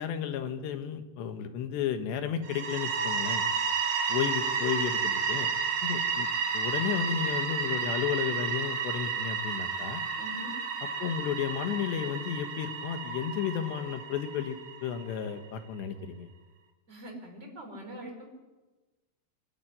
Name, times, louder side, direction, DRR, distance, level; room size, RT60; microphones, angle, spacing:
voice 1, 0.0-3.5 4.1-5.5 5.8-6.3 6.5-10.0 11.0-16.3, left 8 dB, 80° left, 8 dB, 3.6 m, -33 dB
sound 1, 2.4-15.1, right 5 dB, 60° right, 3.9 m, -31 dB
voice 2, 10.2-10.5 16.9-18.3, equal, 15° right, 0 dB, 5.0 m, -43 dB
25.0 x 12.5 x 9.9 m, 1.2 s
omnidirectional pair, 4.9 m